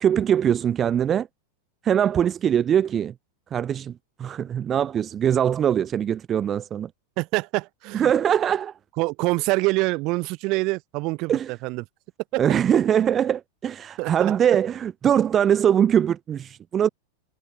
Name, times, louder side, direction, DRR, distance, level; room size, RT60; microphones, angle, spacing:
voice 1, 0.0-1.3 1.8-3.1 3.5-6.9 7.9-8.7 11.3-11.5 12.4-16.9, right 9 dB, 25° right, 0.4 m, -22 dB
voice 2, 7.2-8.1 9.0-11.8 14.0-14.1, right 24 dB, 40° right, 1.0 m, -25 dB
figure-of-eight pair, 90°, 0 cm